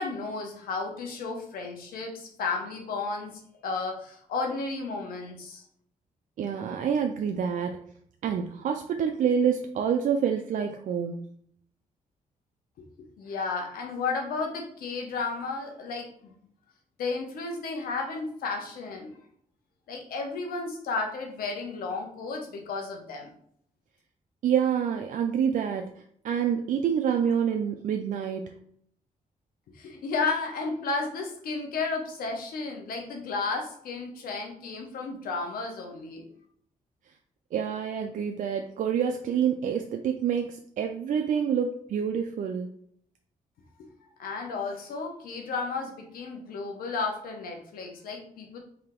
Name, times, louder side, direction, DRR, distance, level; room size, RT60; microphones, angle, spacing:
voice 1, 0.0-5.6 12.8-16.3 17.0-19.2 19.9-23.3 29.7-36.3 43.8-43.9 44.2-48.6, left 4 dB, 90° left, 2 dB, 0.9 m, -33 dB
voice 2, 6.4-7.8 8.2-11.3 24.4-28.6 37.5-42.7, right 7 dB, 60° right, 4 dB, 0.4 m, -27 dB
3.4 x 2.7 x 3.7 m, 0.65 s
cardioid pair, 95°, 15 cm